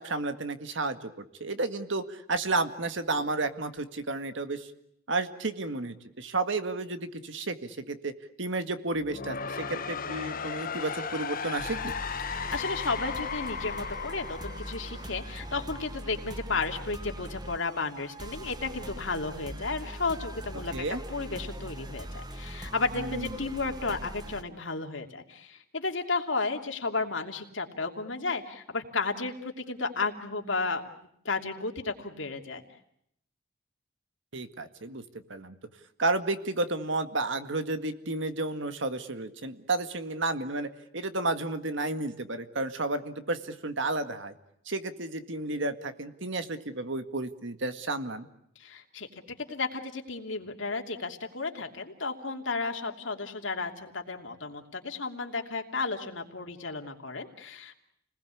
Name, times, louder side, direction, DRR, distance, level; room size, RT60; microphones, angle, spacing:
voice 1, 0.0-4.7 5.1-8.1 8.4-11.9 20.7-21.0 23.0-23.3 34.3-35.0 35.3-35.6 36.0-44.3 44.7-48.3, right 2 dB, 65° right, 9 dB, 1.9 m, -32 dB
sound 1, 8.9-15.9, left 6 dB, 45° left, 1.3 m, -36 dB
sound 2, 11.6-24.4, right 1 dB, 20° right, 1.4 m, -41 dB
voice 2, 12.3-20.7 21.1-30.8 31.2-32.6 48.6-49.1 49.5-57.7, left 3 dB, 70° left, 4 dB, 2.9 m, -33 dB
30.0 x 20.5 x 8.5 m, 0.75 s
head